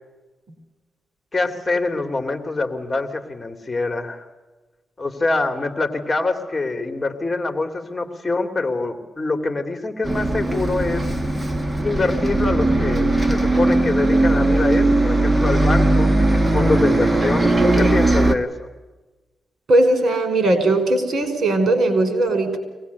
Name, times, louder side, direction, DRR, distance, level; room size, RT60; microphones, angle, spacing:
voice 1, 1.3-4.3 5.0-11.0 11.8-18.7, left 3 dB, 30° left, 6 dB, 2.6 m, -24 dB
Bus, 10.0-18.3, right 2 dB, 15° right, 1.7 m, -18 dB
voice 2, 19.7-22.6, right 2 dB, 60° right, 8 dB, 5.3 m, -18 dB
24.5 x 19.0 x 8.2 m, 1.2 s
cardioid pair, 85°, 0 cm